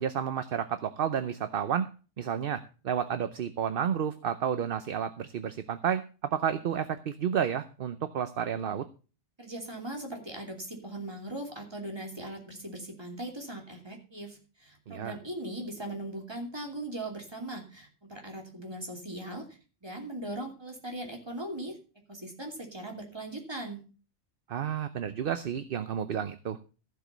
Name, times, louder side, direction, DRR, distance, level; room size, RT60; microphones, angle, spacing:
voice 1, 0.0-1.9 2.2-8.9 14.9-15.2 24.5-26.6, right 8 dB, 55° right, 10 dB, 0.8 m, -31 dB
voice 2, 9.4-21.8 22.1-23.8, right 1 dB, 20° right, 1 dB, 2.8 m, -39 dB
15.0 x 5.1 x 6.6 m, 0.36 s
omnidirectional pair, 1.2 m